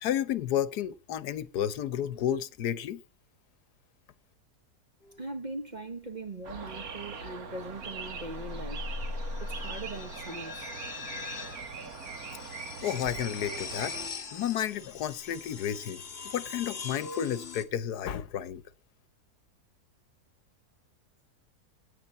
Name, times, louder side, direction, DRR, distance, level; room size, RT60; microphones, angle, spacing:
voice 1, 0.0-3.0 12.8-13.9 14.3-16.0 16.3-18.6, left 10 dB, 80° left, 1.4 m, -31 dB
sound 1, 5.0-5.4 7.6-17.6, left 4 dB, 40° left, 1.4 m, -41 dB
voice 2, 5.2-8.9 9.4-10.8, right 2 dB, 35° right, 0.9 m, -40 dB
sound 2, 6.4-14.1, right 5 dB, 65° right, 1.9 m, -41 dB
16.5 x 9.0 x 4.1 m
omnidirectional pair, 1.7 m